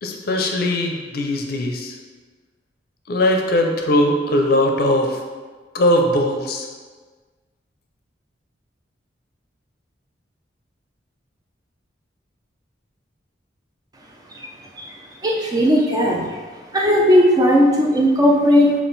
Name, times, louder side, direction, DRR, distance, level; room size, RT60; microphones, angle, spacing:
voice 1, 0.0-1.9 3.1-5.2 5.7-6.7, left 1 dB, 55° left, 2 dB, 0.5 m, -20 dB
voice 2, 15.2-16.3 16.7-18.7, equal, 20° right, 0 dB, 0.4 m, -16 dB
5.4 x 2.5 x 3.9 m, 1.4 s
head